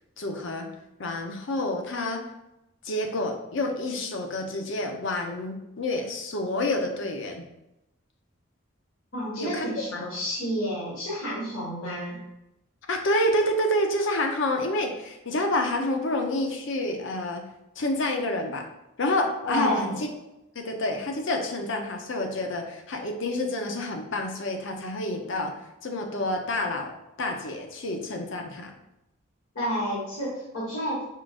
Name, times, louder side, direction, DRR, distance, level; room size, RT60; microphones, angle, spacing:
voice 1, 0.2-0.7 1.0-2.2 2.8-7.5 9.4-10.0 12.9-17.5 17.8-18.6 19.0-20.1 20.5-25.5 25.8-26.9 27.2-28.7, left 1 dB, 65° left, 3 dB, 0.6 m, -28 dB
voice 2, 9.1-12.2 19.4-19.9 29.5-31.0, equal, 90° left, -7 dB, 1.4 m, -30 dB
4.7 x 3.7 x 2.5 m, 0.91 s
head